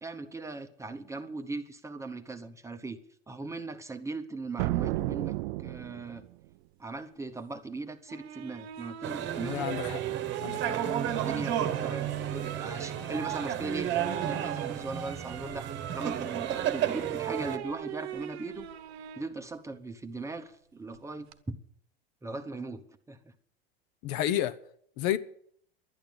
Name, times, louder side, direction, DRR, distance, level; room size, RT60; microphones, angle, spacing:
voice 1, 0.0-3.0 3.3-6.2 6.8-9.7 11.1-18.7 19.2-21.6 22.2-23.2, right 3 dB, 10° right, 0.9 m, -39 dB
sound 1, 4.6-6.3, right 20 dB, 55° right, 0.4 m, -32 dB
sound 2, 8.1-19.3 20.9-21.4, right 12 dB, 80° right, 1.0 m, -40 dB
sound 3, 9.0-17.6, right 10 dB, 35° right, 1.2 m, -33 dB
voice 2, 9.4-10.0 10.4-10.8 24.0-24.5 25.0-25.2, left 12 dB, 50° left, 0.9 m, -30 dB
12.0 x 9.0 x 8.7 m
hypercardioid pair, 115°, 32 cm